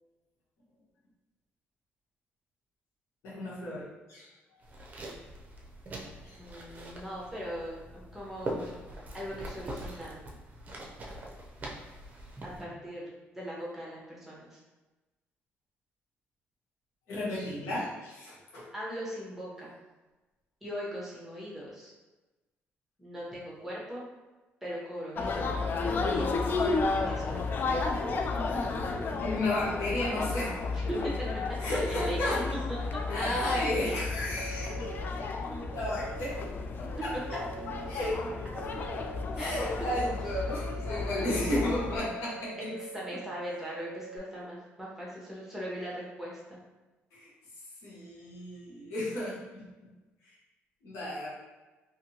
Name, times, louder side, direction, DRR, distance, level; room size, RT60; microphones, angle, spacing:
voice 1, 3.2-4.3 6.2-6.4 17.1-18.7 29.1-30.5 31.6-32.4 33.1-34.9 35.4-36.5 36.8-37.1 37.9-38.2 39.4-42.5 47.1-47.3 47.8-49.6 50.8-51.3, left 1 dB, 85° left, -7 dB, 1.1 m, -33 dB
sound 1, 4.6-12.6, right 1 dB, 35° right, 0.6 m, -42 dB
voice 2, 6.3-8.8 9.1-10.2 12.4-14.6 18.7-19.7 20.6-21.9 23.0-24.1 24.6-26.6 27.1-27.5 30.7-31.1 31.7-32.4 32.9-33.0 37.3-37.4 39.4-39.6 42.8-46.6, equal, 5° right, -6 dB, 1.0 m, -40 dB
Chinese Crowd, 25.2-42.0, left 3 dB, 45° left, 0.3 m, -32 dB
sound 2, 34.4-35.1 35.7-36.5 37.2-37.9 38.5-39.2 39.9-44.2, right 5 dB, 85° right, 0.4 m, -45 dB
2.7 x 2.6 x 2.8 m, 1.1 s
cardioid pair, 95°, 5 cm